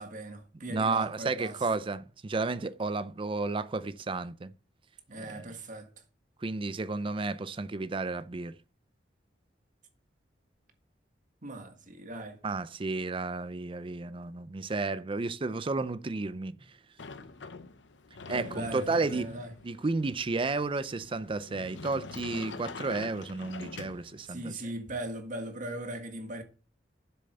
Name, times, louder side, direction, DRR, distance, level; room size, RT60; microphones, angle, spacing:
voice 1, 0.0-1.5 5.1-5.9 11.4-12.4 18.3-19.5 24.3-26.4, right 1 dB, 45° right, 1.7 m, -39 dB
voice 2, 0.7-4.5 5.2-5.5 6.4-8.5 12.4-16.5 18.3-19.3 19.6-24.6, right 3 dB, 30° right, 0.5 m, -32 dB
Sliding door, 17.0-24.5, left 4 dB, 85° left, 0.8 m, -45 dB
7.7 x 6.8 x 6.7 m
head